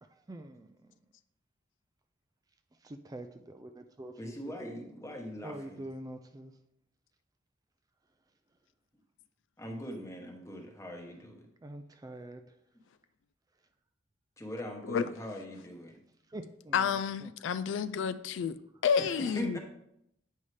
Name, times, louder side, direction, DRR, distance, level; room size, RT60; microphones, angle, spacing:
voice 1, 0.1-0.9 2.8-4.9 5.4-6.6 11.6-12.6 16.3-17.3, right 1 dB, 20° right, 7 dB, 0.3 m, -46 dB
voice 2, 4.2-5.8 9.6-11.5 14.4-16.0 19.0-19.6, equal, 15° left, 2 dB, 1.0 m, -41 dB
voice 3, 16.7-18.6 18.8-19.6, left 7 dB, 80° left, 14 dB, 0.3 m, -30 dB
8.6 x 5.4 x 3.2 m, 0.77 s
head